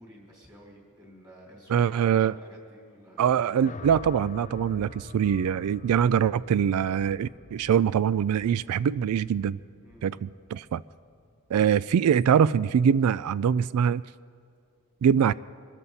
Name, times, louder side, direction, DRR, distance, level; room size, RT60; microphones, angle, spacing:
voice 1, 0.0-3.4 9.8-10.0, equal, 15° right, -2 dB, 3.3 m, -50 dB
voice 2, 1.7-2.3 3.2-9.6 10.0-10.8 11.5-14.0 15.0-15.3, right 8 dB, 85° right, 19 dB, 0.3 m, -23 dB
sound 1, 3.6-11.9, left 4 dB, 35° left, 0.4 m, -46 dB
24.5 x 13.5 x 4.1 m, 2.2 s
head